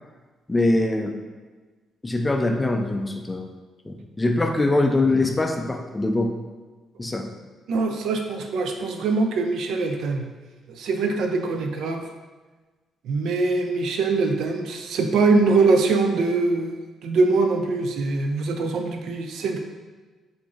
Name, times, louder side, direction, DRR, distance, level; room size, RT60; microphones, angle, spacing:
voice 1, 0.5-1.2 2.0-3.5 3.9-6.3 7.0-7.3, left 2 dB, 20° left, 4 dB, 0.4 m, -23 dB
voice 2, 7.7-10.3 10.8-12.0 13.1-19.6, right 3 dB, 75° right, 4 dB, 0.4 m, -23 dB
4.6 x 2.6 x 2.4 m, 1.3 s
cardioid pair, 90°, 0 cm